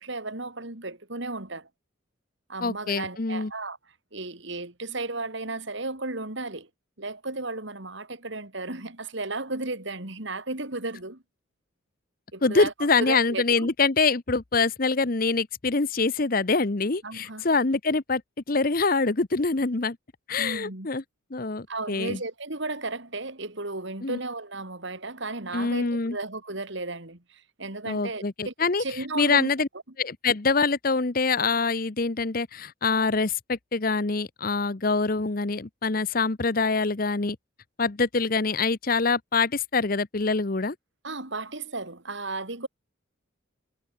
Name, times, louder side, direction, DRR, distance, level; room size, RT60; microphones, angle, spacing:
voice 1, 0.0-1.7 2.5-3.8 4.1-6.7 7.0-11.2 12.3-12.7 13.0-13.7 17.0-17.5 20.4-20.9 21.7-28.5 28.8-29.5 41.0-42.7, right 2 dB, 60° right, 2.9 m, -34 dB
voice 2, 2.6-3.5 12.4-18.2 18.5-20.0 20.3-21.0 21.3-22.2 24.0-24.2 25.5-26.2 27.9-28.8 29.1-29.7 30.0-37.4 37.8-40.7, left 4 dB, 45° left, 0.9 m, -25 dB
head